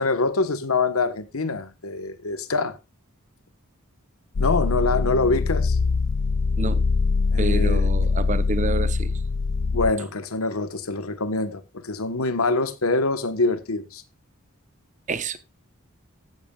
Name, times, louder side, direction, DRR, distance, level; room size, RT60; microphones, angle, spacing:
voice 1, 0.0-2.7 4.4-5.8 7.3-7.9 9.7-14.0, left 3 dB, 80° left, 1.2 m, -25 dB
sound 1, 4.4-9.9, left 4 dB, 55° left, 0.4 m, -23 dB
voice 2, 7.4-9.1 15.1-15.4, right 3 dB, 35° right, 0.7 m, -28 dB
14.5 x 11.0 x 2.3 m
head